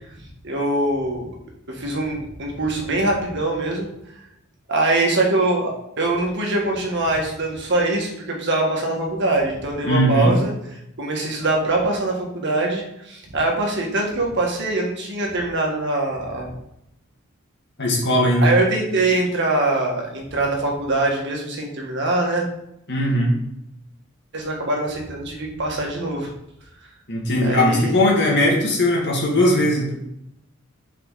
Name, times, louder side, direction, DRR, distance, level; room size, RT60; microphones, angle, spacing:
voice 1, 0.4-1.3 1.7-3.9 4.7-10.5 11.0-16.5 18.4-22.5 24.3-26.3 27.4-27.9, right 2 dB, 60° right, 0 dB, 1.6 m, -23 dB
voice 2, 9.8-10.3 17.8-18.5 22.9-23.3 27.1-29.9, left 1 dB, 55° left, -2 dB, 2.0 m, -19 dB
6.2 x 4.8 x 4.7 m, 0.79 s
head